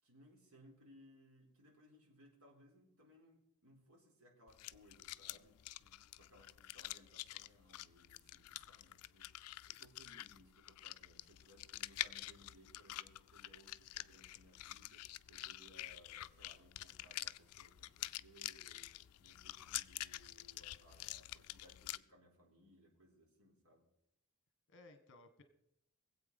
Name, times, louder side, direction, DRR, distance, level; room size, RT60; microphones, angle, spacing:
voice 1, 0.0-5.6 6.2-9.3 9.7-23.8, equal, 75° right, -1 dB, 3.8 m, -65 dB
sound 1, 4.5-22.0, left 15 dB, 90° left, 0.4 m, -48 dB
voice 2, 5.8-6.1 6.6-6.7 19.6-19.9 24.7-25.4, left 2 dB, 55° left, 9 dB, 1.5 m, -63 dB
21.0 x 8.1 x 5.3 m, 0.82 s
head